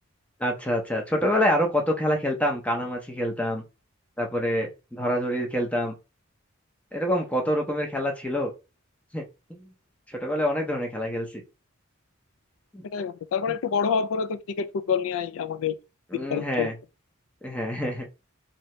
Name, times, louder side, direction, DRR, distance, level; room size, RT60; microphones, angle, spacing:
voice 1, 0.4-3.6 4.2-5.9 6.9-8.5 9.1-9.2 9.5-9.7 10.1-11.4 12.7-12.8 16.1-16.8 17.4-18.2, equal, 5° left, 0.5 m, -26 dB
voice 2, 12.9-15.8 16.1-16.7, left 6 dB, 75° left, 0.3 m, -27 dB
2.8 x 2.7 x 3.1 m
head